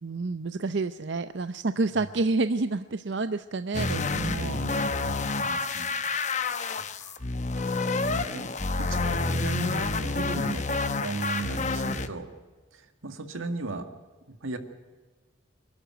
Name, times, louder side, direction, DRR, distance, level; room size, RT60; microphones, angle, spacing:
voice 1, 0.0-4.6, right 3 dB, 60° right, 11 dB, 0.6 m, -29 dB
sound 1, 3.7-12.1, left 3 dB, 35° left, 0.9 m, -29 dB
voice 2, 4.4-5.9 7.0-7.2 7.6-8.5 8.8-12.3 12.7-13.9 14.3-14.6, right 2 dB, 90° right, 7 dB, 2.0 m, -36 dB
25.0 x 12.0 x 9.0 m, 1.3 s
head